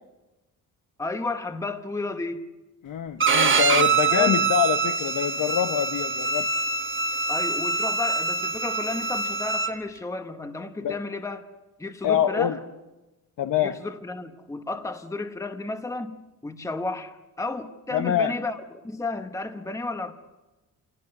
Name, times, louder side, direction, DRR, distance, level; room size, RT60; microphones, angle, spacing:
voice 1, 1.0-2.5 4.1-4.4 7.3-11.5 11.8-12.6 13.6-16.2 16.4-20.1, left 2 dB, 10° left, 1.1 m, -32 dB
voice 2, 2.8-6.5 10.8-11.0 12.0-12.6 13.4-13.7 17.9-18.3, left 10 dB, 80° left, 1.1 m, -25 dB
Bowed string instrument, 3.2-9.7, right 4 dB, 40° right, 1.4 m, -24 dB
28.0 x 18.0 x 9.8 m
wide cardioid pair, 150°, 32 cm